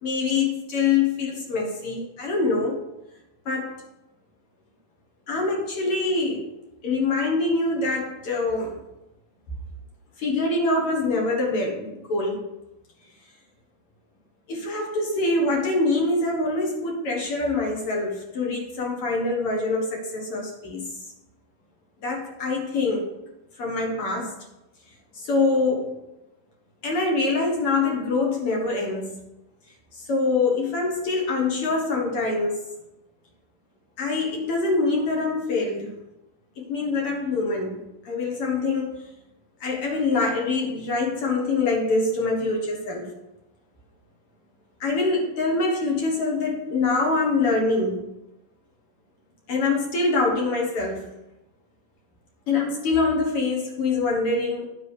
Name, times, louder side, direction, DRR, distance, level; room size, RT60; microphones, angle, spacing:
voice 1, 0.0-2.8 3.5-3.7 5.3-6.5 6.8-8.8 10.2-12.4 14.5-20.9 22.0-23.1 23.6-24.3 25.1-25.9 26.8-29.1 30.0-32.6 34.0-35.9 36.6-37.7 38.1-38.9 39.6-43.0 44.8-48.0 49.5-51.0 52.5-54.7, left 3 dB, 50° left, -1 dB, 2.0 m, -24 dB
10.0 x 4.0 x 6.6 m, 0.92 s
omnidirectional pair, 4.2 m